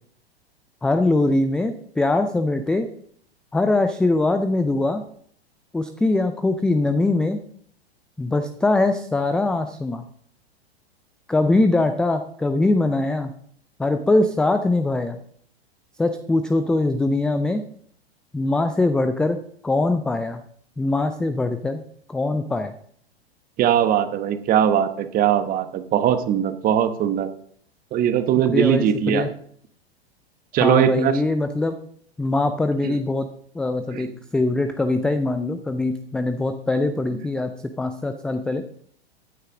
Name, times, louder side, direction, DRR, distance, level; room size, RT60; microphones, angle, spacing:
voice 1, 0.8-2.9 3.5-5.0 5.7-7.4 8.2-10.0 11.3-13.3 13.8-15.2 16.0-17.6 18.3-19.4 19.6-20.4 20.8-21.8 22.1-22.7 28.5-29.3 30.6-31.7 32.2-33.3 33.5-37.5 37.8-38.6, left 2 dB, 5° left, 8 dB, 0.3 m, -22 dB
voice 2, 23.6-27.3 27.9-29.3 30.5-31.2 32.8-33.0 33.9-34.1, right 10 dB, 25° right, 10 dB, 1.2 m, -20 dB
14.5 x 9.5 x 3.7 m, 0.62 s
figure-of-eight pair, 100°, 32 cm